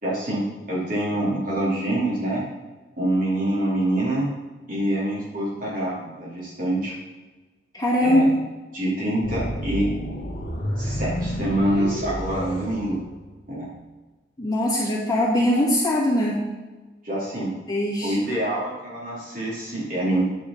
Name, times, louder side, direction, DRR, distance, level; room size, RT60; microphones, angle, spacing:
voice 1, 0.0-2.4 3.0-4.3 4.7-6.9 8.0-8.3 8.7-9.9 10.8-13.0 13.5-13.7 17.0-17.5 18.0-20.2, right 1 dB, 50° right, -6 dB, 2.9 m, -25 dB
voice 2, 7.7-8.2 14.4-16.4 17.7-18.1, left 1 dB, 20° left, -8 dB, 2.4 m, -21 dB
sound 1, 9.2-13.5, equal, 50° left, 2.2 m, -30 dB
9.9 x 4.9 x 5.6 m, 1.2 s
head